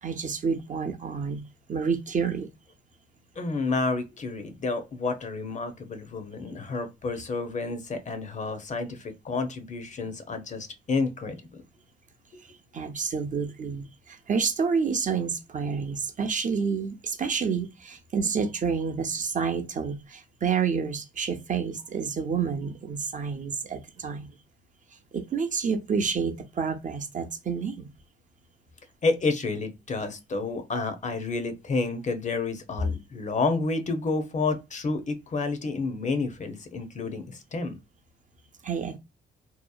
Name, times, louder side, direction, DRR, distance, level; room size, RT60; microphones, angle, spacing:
voice 1, 0.0-1.4 1.7-2.5 12.7-24.3 25.1-27.9 38.6-39.0, right 6 dB, 40° right, 0.6 m, -29 dB
voice 2, 3.4-11.6 29.0-37.8, left 3 dB, 35° left, 0.7 m, -30 dB
2.8 x 2.1 x 2.2 m
cardioid pair, 90°, 20 cm